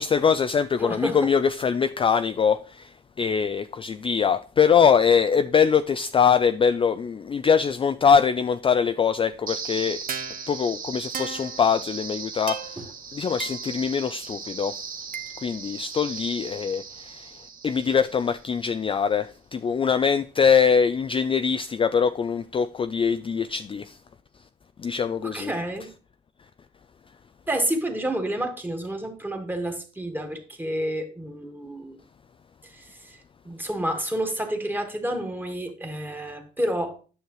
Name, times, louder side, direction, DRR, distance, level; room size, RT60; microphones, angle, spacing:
voice 1, 0.0-10.0 10.5-12.8 13.1-14.9 15.4-24.0 24.8-25.5, left 6 dB, 25° left, 0.3 m, -23 dB
voice 2, 0.8-1.2 12.8-12.9 25.2-25.9 27.5-32.0 32.6-33.2 33.4-37.0, right 1 dB, 10° right, 1.7 m, -29 dB
sound 1, 9.5-18.5, right 6 dB, 45° right, 1.0 m, -36 dB
9.5 x 6.4 x 3.1 m
cardioid pair, 90°, 20 cm